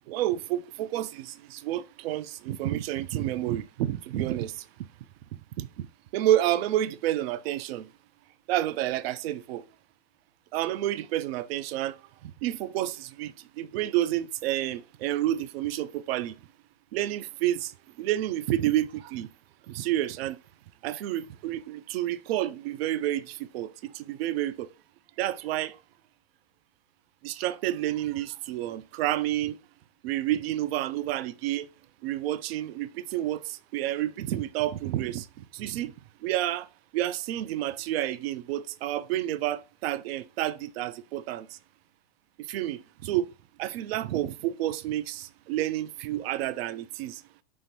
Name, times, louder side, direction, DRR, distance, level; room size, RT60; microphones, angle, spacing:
voice 1, 0.1-4.7 5.3-5.9 6.1-7.9 8.5-9.6 10.5-16.4 16.9-19.3 19.7-20.4 20.8-24.7 25.2-25.8 27.2-29.6 30.0-31.7 32.0-35.9 36.2-36.7 36.9-41.6 42.4-43.3 43.6-47.2, right 13 dB, 60° right, 0.5 m, -30 dB
5.3 x 3.1 x 2.9 m
hypercardioid pair, 135°, 35 cm